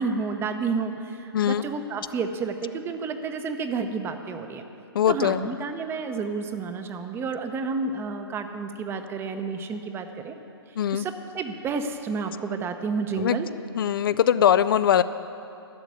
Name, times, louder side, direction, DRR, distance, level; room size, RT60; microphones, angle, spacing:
voice 1, 0.0-4.6 5.1-10.4 10.7-13.5, right 4 dB, 15° right, 7 dB, 0.7 m, -30 dB
voice 2, 4.9-5.4 10.8-11.1 13.2-13.4 13.8-15.0, left 9 dB, 60° left, 14 dB, 0.4 m, -21 dB
11.5 x 7.0 x 9.5 m, 2.8 s
figure-of-eight pair, 125°, 13 cm